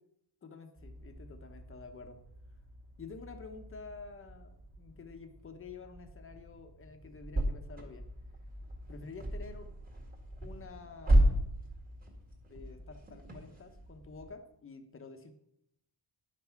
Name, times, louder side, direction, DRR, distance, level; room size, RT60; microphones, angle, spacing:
voice 1, 0.4-2.2 3.0-8.1 8.9-9.7 10.4-11.4 12.5-15.3, left 4 dB, 30° left, 6 dB, 1.0 m, -49 dB
sound 1, 0.8-14.3, right 1 dB, 20° right, 1.9 m, -35 dB
11.0 x 5.8 x 5.8 m, 0.77 s
cardioid pair, 170°, 44 cm